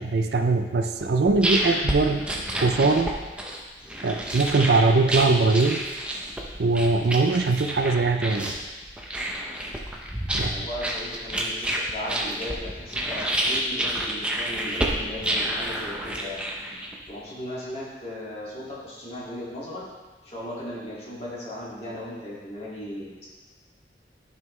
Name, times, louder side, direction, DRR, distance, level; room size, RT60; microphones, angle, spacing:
voice 1, 0.0-3.1 4.0-5.8 6.6-8.5 10.3-10.6, right 3 dB, 65° right, 7 dB, 0.4 m, -22 dB
sound 1, 1.0-17.1, right 1 dB, 5° right, 0.7 m, -29 dB
voice 2, 10.5-16.4 17.1-19.8 20.2-23.3, left 1 dB, 35° left, -7 dB, 2.3 m, -36 dB
11.0 x 5.5 x 3.2 m, 1.3 s
head